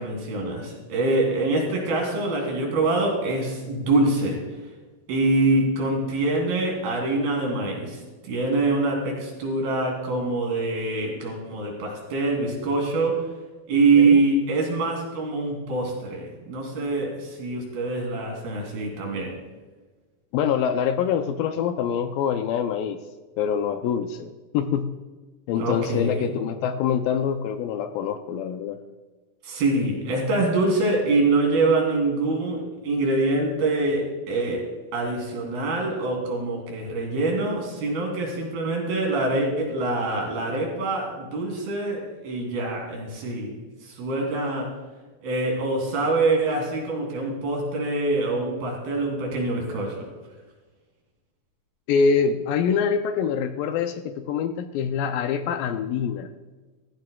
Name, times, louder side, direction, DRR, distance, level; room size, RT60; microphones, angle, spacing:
voice 1, 0.0-4.4 5.1-13.3 13.7-19.3 25.5-26.3 29.4-44.8 45.2-50.0, right 2 dB, 85° right, -1 dB, 4.7 m, -24 dB
voice 2, 20.3-23.0 23.4-24.9 25.5-28.8 51.9-56.3, left 7 dB, 80° left, 8 dB, 2.1 m, -25 dB
15.5 x 14.5 x 2.3 m, 1.3 s
omnidirectional pair, 4.4 m